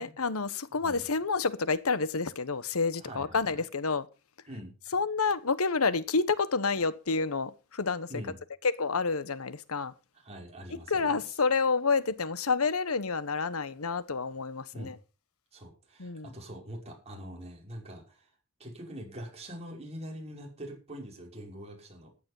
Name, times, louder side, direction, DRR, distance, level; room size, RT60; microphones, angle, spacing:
voice 1, 0.0-4.1 4.9-8.1 8.8-9.9 10.9-15.0 16.0-16.3, left 4 dB, 90° left, 1.1 m, -29 dB
voice 2, 3.0-3.6 4.5-4.7 8.1-8.4 10.2-11.2 14.7-14.9 15.5-18.3 18.6-22.1, equal, 30° right, 5.9 m, -44 dB
14.5 x 10.0 x 5.5 m
head